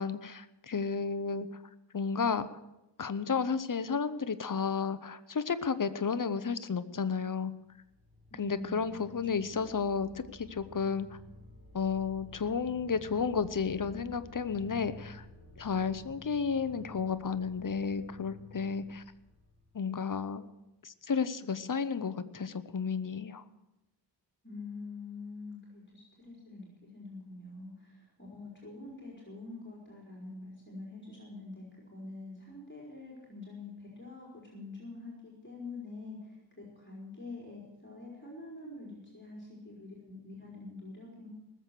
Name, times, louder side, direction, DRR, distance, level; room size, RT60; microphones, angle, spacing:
voice 1, 0.0-1.5 1.9-2.5 3.0-7.5 8.4-11.1 11.7-15.2 15.6-19.0 19.7-20.4 20.8-23.4, left 5 dB, 45° left, 13 dB, 0.8 m, -32 dB
sound 1, 7.6-20.3, left 1 dB, 30° right, 3.9 m, -53 dB
voice 2, 8.3-8.9 9.3-9.6 24.4-31.6 31.9-36.4 36.8-41.3, left 3 dB, 25° left, -4 dB, 4.4 m, -46 dB
19.5 x 7.6 x 6.7 m, 0.98 s
wide cardioid pair, 80°, 44 cm